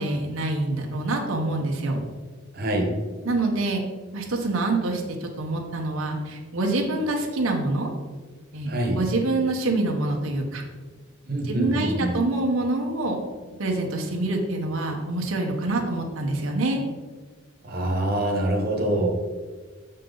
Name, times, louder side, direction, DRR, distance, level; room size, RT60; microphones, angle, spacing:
voice 1, 0.0-2.0 3.2-3.8 4.1-7.9 8.5-8.7 9.0-10.6 11.5-13.2 13.6-16.8, right 2 dB, 90° right, 1 dB, 0.9 m, -26 dB
voice 2, 2.5-3.0 8.7-9.0 11.2-12.2 17.6-19.1, right 1 dB, 50° right, 1 dB, 1.1 m, -25 dB
6.7 x 5.4 x 3.8 m, 1.4 s
head